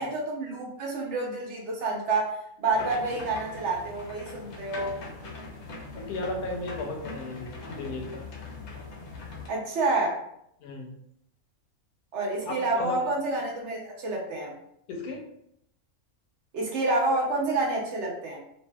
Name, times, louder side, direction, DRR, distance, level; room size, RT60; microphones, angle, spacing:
voice 1, 0.0-5.0 9.5-10.2 12.1-14.5 16.5-18.4, right 2 dB, 60° right, -1 dB, 0.9 m, -28 dB
sound 1, 2.7-9.5, left 3 dB, 60° left, 0.8 m, -41 dB
voice 2, 5.9-8.3 10.6-11.0 12.5-13.0 14.9-15.3, left 2 dB, 85° left, 3 dB, 1.1 m, -35 dB
2.6 x 2.5 x 2.2 m, 0.73 s
omnidirectional pair, 1.5 m